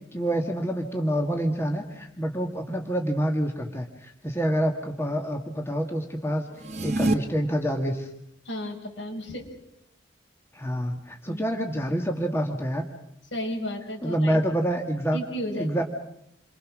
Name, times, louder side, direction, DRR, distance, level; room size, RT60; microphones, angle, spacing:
voice 1, 0.1-6.5 6.8-8.1 10.5-12.9 14.0-15.2 15.6-15.8, equal, 15° left, 3 dB, 1.9 m, -27 dB
sound 1, 6.5-7.1, right 2 dB, 35° right, 1.3 m, -25 dB
voice 2, 8.4-9.5 11.3-11.4 13.3-14.4 15.1-15.7, equal, 75° left, 2 dB, 5.5 m, -33 dB
28.5 x 24.5 x 6.3 m, 0.79 s
head